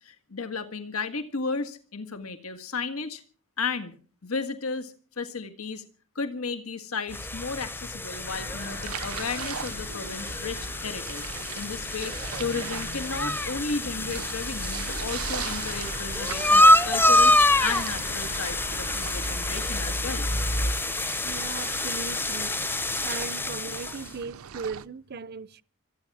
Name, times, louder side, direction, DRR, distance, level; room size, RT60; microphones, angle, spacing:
voice 1, 0.0-3.2 3.6-3.9 4.2-5.8 6.2-10.6 10.8-11.2 11.5-12.1 12.4-17.3 17.6-20.3, left 4 dB, 90° left, 1.8 m, -34 dB
sound 1, 7.1-24.1, left 1 dB, 10° left, 0.7 m, -26 dB
sound 2, 8.2-20.7, left 1 dB, 45° left, 1.1 m, -37 dB
sound 3, 8.6-24.9, right 8 dB, 85° right, 0.7 m, -40 dB
voice 2, 21.2-22.6 23.0-25.6, right 5 dB, 50° right, 0.6 m, -38 dB
25.5 x 9.8 x 4.9 m
head